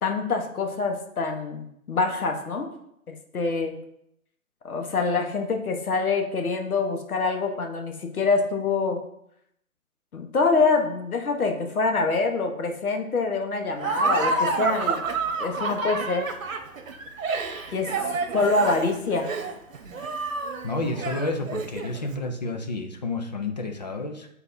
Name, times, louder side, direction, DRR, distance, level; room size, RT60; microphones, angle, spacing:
voice 1, 0.0-2.7 3.1-3.8 4.6-9.0 10.1-15.0 15.4-16.3 17.7-18.1 18.3-19.3, left 3 dB, 80° left, 3 dB, 1.3 m, -25 dB
Laughter, 13.8-22.1, right 3 dB, 65° right, 1.1 m, -29 dB
voice 2, 20.6-24.3, left 2 dB, 30° left, 4 dB, 0.5 m, -30 dB
9.1 x 4.0 x 2.7 m, 0.76 s
hypercardioid pair, 150°, 43 cm